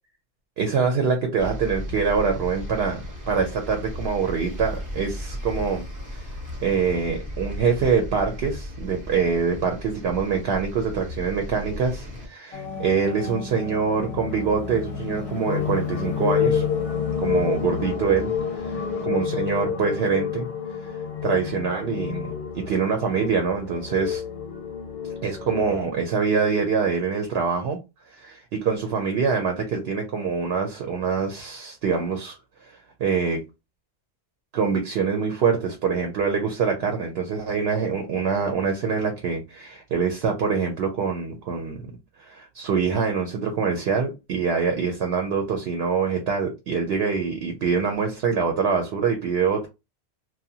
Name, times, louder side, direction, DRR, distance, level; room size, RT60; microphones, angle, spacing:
voice 1, 0.6-5.8 6.1-6.3 6.6-16.6 17.2-20.5 21.2-22.3 22.5-24.2 25.2-27.8 28.1-32.4 32.6-32.7 33.0-33.4 34.5-41.8 42.2-49.7, right 5 dB, 70° right, 0.8 m, -25 dB
sound 1, 1.4-12.3, left 1 dB, 20° right, 0.6 m, -35 dB
sound 2, 12.5-19.1, left 6 dB, 40° left, 0.6 m, -36 dB
sound 3, 15.5-25.8, left 7 dB, 90° left, 1.0 m, -28 dB
2.7 x 2.2 x 2.7 m
omnidirectional pair, 1.2 m